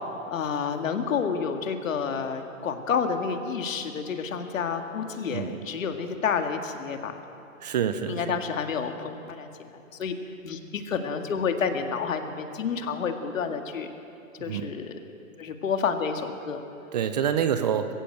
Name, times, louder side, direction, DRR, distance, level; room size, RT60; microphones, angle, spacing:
voice 1, 0.3-7.2 8.1-10.1 10.4-13.9 14.4-15.0 15.4-16.6, left 6 dB, 65° left, 6 dB, 2.1 m, -29 dB
voice 2, 7.6-8.4 14.5-14.7 16.9-17.9, right 8 dB, 30° right, 11 dB, 0.7 m, -27 dB
21.5 x 16.0 x 7.9 m, 2.9 s
hypercardioid pair, 155°, 42 cm